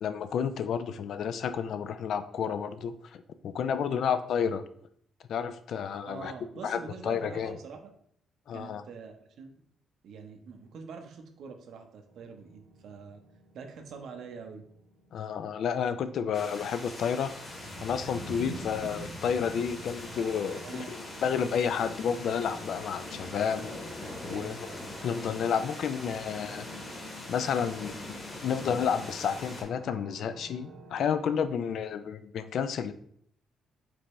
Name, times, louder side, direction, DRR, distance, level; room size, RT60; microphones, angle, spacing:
voice 1, 0.0-4.6 5.3-6.3 6.6-7.5 8.5-8.8 15.1-17.5 17.8-23.7 24.2-24.7 25.0-26.7 27.3-27.9 28.4-32.9, left 7 dB, 70° left, 11 dB, 0.3 m, -31 dB
voice 2, 6.0-7.9 8.5-9.5 10.0-13.2 13.5-14.7 18.8-18.9 20.5-21.1 24.3-24.6 31.5-31.7, right 5 dB, 70° right, 5 dB, 0.7 m, -45 dB
sound 1, 12.0-31.3, right 2 dB, 90° right, 1.3 m, -55 dB
sound 2, 16.3-29.6, left 1 dB, 35° left, 1.5 m, -41 dB
4.9 x 3.5 x 3.0 m, 0.64 s
cardioid pair, 90°, 0 cm